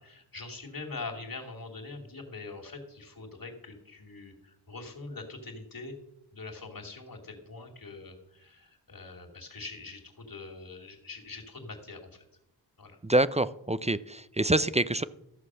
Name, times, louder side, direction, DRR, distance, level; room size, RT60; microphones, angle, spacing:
voice 1, 0.0-5.9 6.3-12.3 12.8-13.0, left 3 dB, 50° left, 2 dB, 2.8 m, -43 dB
voice 2, 13.0-15.0, right 1 dB, 15° right, 16 dB, 0.5 m, -26 dB
14.0 x 6.7 x 6.3 m, 0.82 s
cardioid pair, 45°, 43 cm